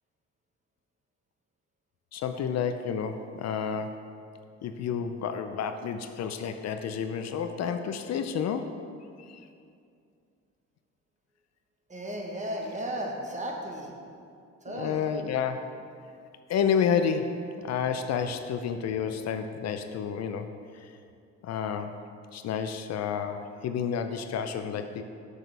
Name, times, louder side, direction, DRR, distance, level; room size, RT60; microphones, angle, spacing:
voice 1, 2.1-4.0 4.6-8.8 9.2-9.4 14.7-15.7 16.5-17.4 17.6-21.0 21.4-22.0 22.3-25.0, left 7 dB, 60° left, 8 dB, 0.4 m, -30 dB
voice 2, 11.9-13.9 14.6-15.1, equal, 25° right, 0 dB, 1.1 m, -34 dB
6.5 x 6.2 x 3.3 m, 2.4 s
cardioid pair, 90°, 30 cm